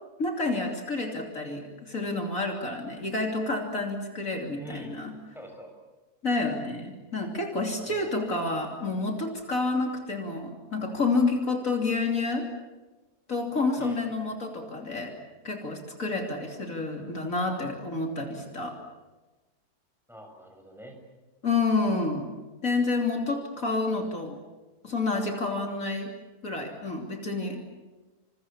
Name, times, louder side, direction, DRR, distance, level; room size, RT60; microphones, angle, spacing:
voice 1, 0.2-5.1 6.2-12.5 13.3-15.1 15.4-18.8 21.4-22.3 22.6-24.4 24.8-26.1 26.4-27.6, left 3 dB, 55° left, 2 dB, 3.4 m, -29 dB
voice 2, 4.6-5.0 5.3-5.7 7.9-8.2 13.8-14.0 20.1-21.0, right 1 dB, ahead, 3 dB, 6.7 m, -45 dB
28.5 x 27.0 x 7.3 m, 1.2 s
omnidirectional pair, 1.7 m